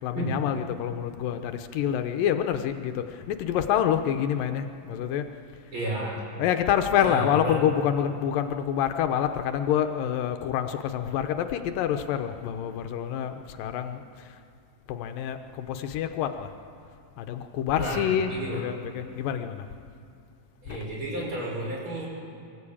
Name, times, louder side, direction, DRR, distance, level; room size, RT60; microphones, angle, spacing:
voice 1, 0.0-5.3 6.4-14.3 14.9-16.5 17.2-19.7 20.7-20.9, left 9 dB, 80° left, 7 dB, 2.4 m, -27 dB
voice 2, 5.7-6.2 7.0-7.6 17.7-18.6 20.6-22.1, right 1 dB, 35° right, -4 dB, 6.1 m, -32 dB
23.5 x 14.5 x 8.6 m, 2.5 s
omnidirectional pair, 4.0 m